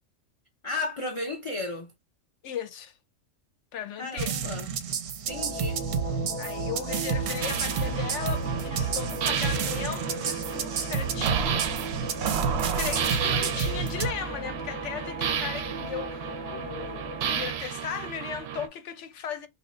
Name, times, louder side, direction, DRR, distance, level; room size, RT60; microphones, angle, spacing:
voice 1, 0.6-1.9 4.0-4.7 5.3-5.8, left 2 dB, 40° left, 0.4 m, -34 dB
voice 2, 2.4-3.0 3.7-4.4 6.4-11.8 12.7-19.5, left 8 dB, 70° left, 0.9 m, -37 dB
sound 1, 4.2-14.1, right 6 dB, 90° right, 1.0 m, -30 dB
sound 2, 5.3-17.5, right 1 dB, 5° left, 0.9 m, -37 dB
sound 3, 7.4-18.7, right 8 dB, 65° right, 0.7 m, -32 dB
2.9 x 2.7 x 4.2 m
omnidirectional pair, 1.3 m